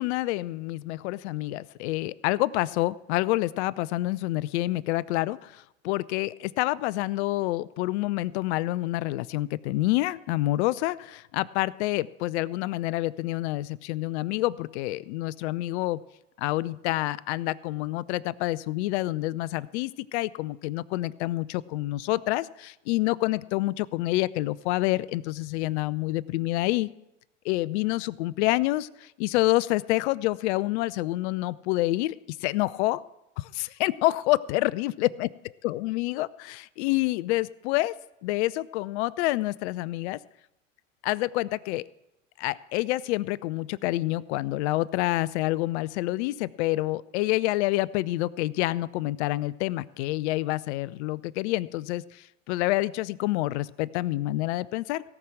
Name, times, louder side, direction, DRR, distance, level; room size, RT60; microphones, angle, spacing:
voice 1, 0.0-16.0 16.4-26.9 27.4-32.1 32.4-33.0 33.4-35.3 35.6-37.9 38.2-40.2 41.0-41.9 42.4-55.0, left 18 dB, 60° left, 20 dB, 0.6 m, -28 dB
17.5 x 6.0 x 7.6 m, 0.91 s
hypercardioid pair, 85°, 37 cm